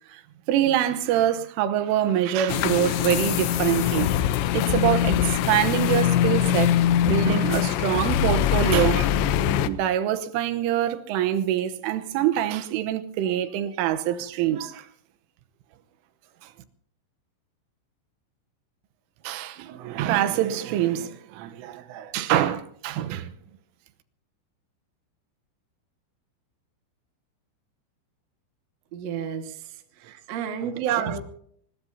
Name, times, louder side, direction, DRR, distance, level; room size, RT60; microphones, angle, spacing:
voice 1, 0.5-6.8 7.1-9.3 9.7-14.9 19.3-23.3 30.8-31.2, right 11 dB, 90° right, 3.6 m, -25 dB
sound 1, 2.5-9.7, left 11 dB, 80° left, 2.8 m, -22 dB
voice 2, 28.9-29.5 30.0-31.2, right 7 dB, 55° right, 2.0 m, -32 dB
23.5 x 21.0 x 2.8 m
omnidirectional pair, 5.6 m